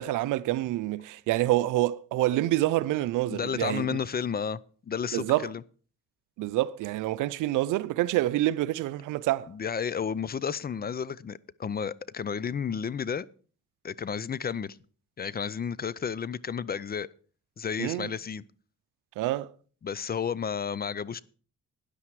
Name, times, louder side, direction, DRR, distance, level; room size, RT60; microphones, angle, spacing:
voice 1, 0.0-3.9 5.1-5.5 6.4-9.5 17.8-18.1 19.2-19.5, right 16 dB, 90° right, 0.6 m, -27 dB
voice 2, 3.3-4.6 4.9-5.6 9.5-13.3 13.8-14.8 15.2-17.1 17.6-18.4 19.8-21.2, left 7 dB, 30° left, 0.5 m, -32 dB
13.0 x 10.0 x 4.7 m
cardioid pair, 90°, 30 cm